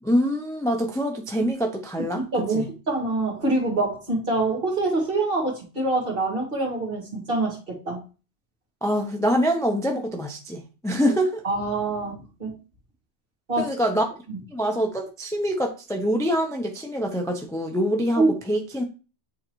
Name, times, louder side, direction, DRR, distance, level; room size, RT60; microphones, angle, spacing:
voice 1, 0.0-2.2 2.5-2.7 8.8-11.4 13.6-14.0 14.5-18.8, equal, 5° left, 0.6 m, -25 dB
voice 2, 2.3-8.0 11.1-11.2 11.4-12.5 13.5-13.7 14.3-14.4 18.2-18.3, right 2 dB, 50° right, 2.0 m, -25 dB
8.4 x 3.9 x 3.0 m
omnidirectional pair, 1.2 m